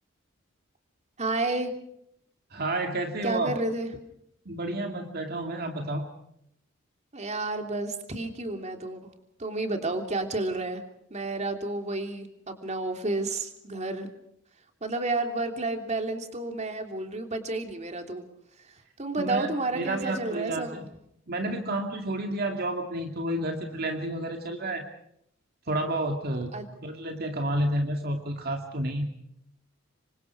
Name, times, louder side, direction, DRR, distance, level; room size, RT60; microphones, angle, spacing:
voice 1, 1.2-1.7 3.2-3.9 7.1-9.0 9.4-10.8 11.1-14.1 14.8-18.2 18.6-20.9 26.5-26.7, right 2 dB, 35° right, 5 dB, 3.0 m, -31 dB
voice 2, 2.5-3.5 4.5-6.1 19.2-19.5 19.7-20.9 21.3-24.8 25.7-26.5 26.8-29.1, right 1 dB, 50° right, 4 dB, 2.4 m, -30 dB
27.5 x 24.5 x 4.7 m, 0.74 s
head